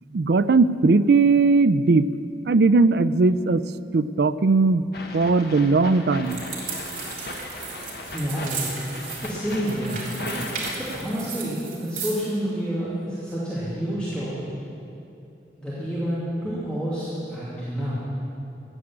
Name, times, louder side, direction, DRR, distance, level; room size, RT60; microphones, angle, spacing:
voice 1, 0.1-2.0 2.5-3.6 3.9-4.8 5.1-6.4, right 3 dB, 65° right, 14 dB, 0.4 m, -18 dB
sound 1, 4.9-11.0, left 2 dB, 60° left, 1.3 m, -37 dB
sound 2, 6.2-12.3, right 5 dB, 50° right, 3.0 m, -35 dB
voice 2, 8.0-8.7 9.2-10.0 10.3-10.4 10.8-14.5 15.6-18.0, equal, 5° left, -11 dB, 2.6 m, -29 dB
15.5 x 10.0 x 7.5 m, 2.7 s
head